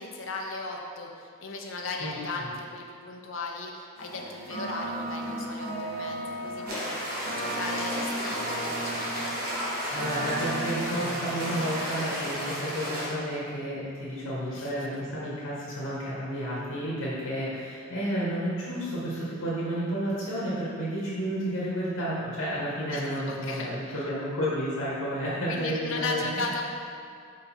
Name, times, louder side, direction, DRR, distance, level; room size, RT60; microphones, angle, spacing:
voice 1, 0.0-7.0 7.3-9.2 14.5-14.7 22.9-24.1 25.5-26.6, left 3 dB, 60° left, 1 dB, 0.7 m, -36 dB
sound 1, 4.0-12.5, right 1 dB, 90° right, 1.4 m, -36 dB
sound 2, 6.7-13.1, equal, 45° right, 1.3 m, -33 dB
voice 2, 9.9-26.2, equal, 85° left, -7 dB, 1.5 m, -31 dB
5.3 x 4.8 x 4.3 m, 2.3 s
head